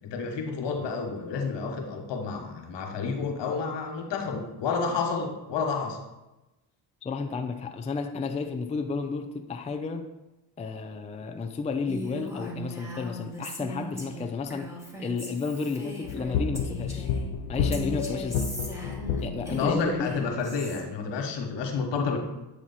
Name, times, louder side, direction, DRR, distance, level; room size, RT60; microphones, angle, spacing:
voice 1, 0.0-6.0 19.5-22.2, left 5 dB, 65° left, 3 dB, 1.3 m, -30 dB
voice 2, 7.0-10.1 10.6-14.7 15.0-17.1 17.5-18.5 19.2-20.1, left 4 dB, 15° left, 6 dB, 0.4 m, -32 dB
Female speech woman speaking, 11.9-17.2 17.7-20.8, equal, 5° right, 1.6 m, -39 dB
sound 1, 16.0-20.1, left 6 dB, 85° left, 0.7 m, -30 dB
8.4 x 3.1 x 4.1 m, 1.0 s
supercardioid pair, 65°, 46 cm